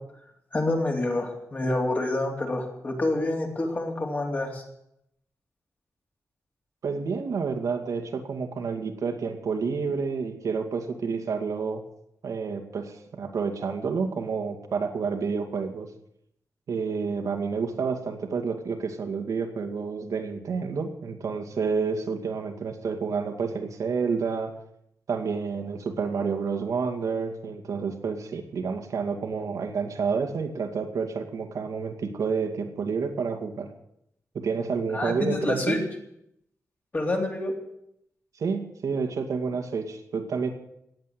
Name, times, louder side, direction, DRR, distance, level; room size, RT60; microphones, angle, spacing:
voice 1, 0.5-4.6 34.9-35.8 36.9-37.5, left 2 dB, 30° left, 1 dB, 3.4 m, -27 dB
voice 2, 6.8-11.8 12.2-15.9 16.7-24.5 25.1-33.7 34.3-35.8 38.4-40.5, right 5 dB, 75° right, 4 dB, 2.3 m, -29 dB
17.5 x 8.2 x 9.5 m, 0.77 s
wide cardioid pair, 145°, 6 cm